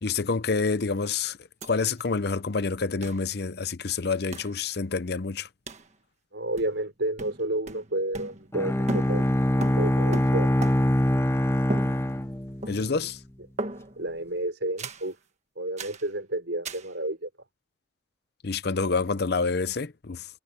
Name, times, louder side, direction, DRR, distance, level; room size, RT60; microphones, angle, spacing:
voice 1, 0.0-1.4 1.6-5.5 12.7-13.2 18.4-20.3, left 4 dB, 55° left, 0.7 m, -27 dB
sound 1, 1.6-1.7 2.0-2.1 3.0-3.2 4.3-4.6 5.7-5.9 6.6-6.9 7.2-8.6 8.9-11.0 11.7-12.3 12.6-13.1 13.6-14.1 14.8-15.1 15.8-16.1 16.6-16.9, right 2 dB, 35° right, 1.5 m, -37 dB
voice 2, 6.3-10.5 12.8-12.9 14.0-15.2 15.6-17.3, right 1 dB, 70° right, 5.3 m, -31 dB
Bowed string instrument, 8.5-13.0, left 1 dB, 15° left, 0.9 m, -24 dB
head